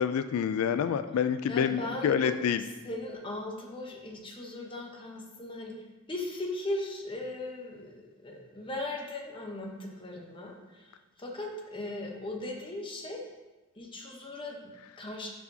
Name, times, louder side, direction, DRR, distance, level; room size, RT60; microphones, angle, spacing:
voice 1, 0.0-2.6, left 7 dB, 90° left, 13 dB, 0.3 m, -27 dB
voice 2, 1.5-13.3 13.8-15.3, left 2 dB, 25° left, 0 dB, 0.9 m, -38 dB
9.8 x 4.7 x 2.7 m, 1.2 s
head